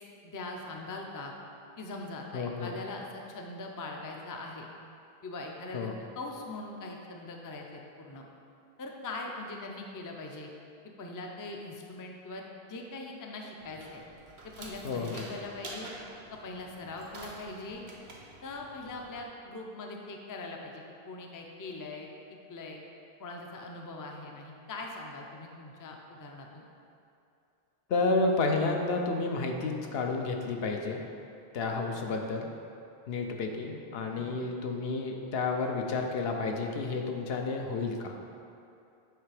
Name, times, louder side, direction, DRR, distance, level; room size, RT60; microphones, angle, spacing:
voice 1, 0.2-1.3 1.8-4.7 5.2-8.3 8.8-10.5 11.0-14.0 14.4-15.9 16.3-17.8 18.4-22.1 22.5-22.8 23.2-26.6 34.2-34.4, left 2 dB, 30° left, 1 dB, 0.4 m, -41 dB
voice 2, 2.3-2.7 5.7-6.0 14.8-15.3 27.9-31.1 31.5-32.5 33.1-38.2, left 3 dB, 75° left, 2 dB, 0.8 m, -31 dB
sound 1, 13.6-19.2, right 2 dB, 85° right, 1.1 m, -48 dB
7.8 x 3.3 x 4.8 m, 2.6 s
omnidirectional pair, 1.1 m